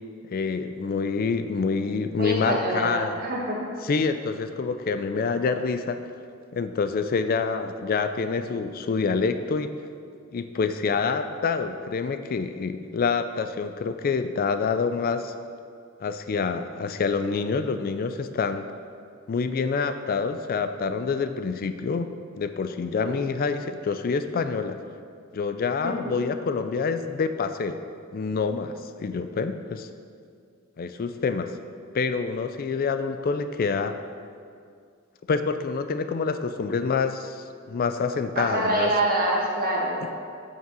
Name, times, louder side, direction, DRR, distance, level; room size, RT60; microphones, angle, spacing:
voice 1, 0.3-3.1 3.8-6.0 6.5-9.7 10.3-15.3 16.0-18.7 19.3-22.1 22.4-24.8 25.3-27.8 28.1-28.7 29.0-29.9 30.8-31.5 31.9-33.9 35.3-38.9, left 5 dB, 45° left, 10 dB, 0.4 m, -27 dB
voice 2, 2.2-3.6 23.0-23.2 25.8-26.0 38.3-40.0, right 1 dB, 45° right, -2 dB, 1.6 m, -26 dB
7.4 x 5.7 x 6.0 m, 2.2 s
head